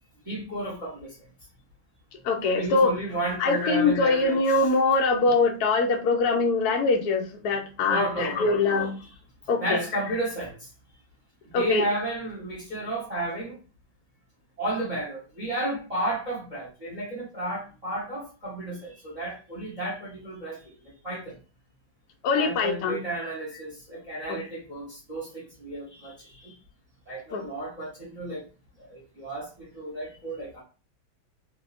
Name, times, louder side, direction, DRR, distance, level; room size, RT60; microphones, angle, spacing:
voice 1, 0.2-1.1 2.5-4.7 7.9-9.1 9.5-10.5 11.5-13.6 14.6-20.6 21.0-21.4 22.3-26.5 27.1-28.4 28.9-30.6, right 1 dB, 25° right, 1.0 m, -32 dB
voice 2, 2.2-2.9 3.4-8.9 9.5-9.8 11.5-11.8 22.2-23.0 24.3-24.4 27.3-27.4, left 3 dB, 65° left, 1.0 m, -23 dB
3.4 x 2.8 x 2.5 m
omnidirectional pair, 2.2 m